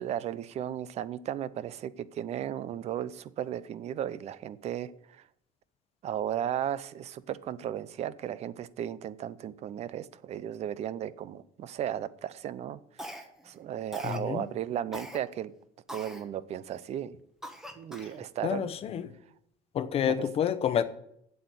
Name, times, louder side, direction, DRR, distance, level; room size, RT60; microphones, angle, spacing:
voice 1, 0.0-5.2 6.0-15.5 15.9-17.2 17.8-18.7, right 10 dB, 45° right, 0.6 m, -35 dB
Cough, 13.0-13.5 13.9-14.3 14.9-15.2 15.9-16.2 16.8-16.9 17.4-18.2, equal, 5° right, 1.2 m, -42 dB
voice 2, 14.0-14.5 18.4-19.1 19.7-20.8, left 9 dB, 40° left, 0.8 m, -29 dB
7.9 x 7.9 x 8.1 m
cardioid pair, 150°, 15 cm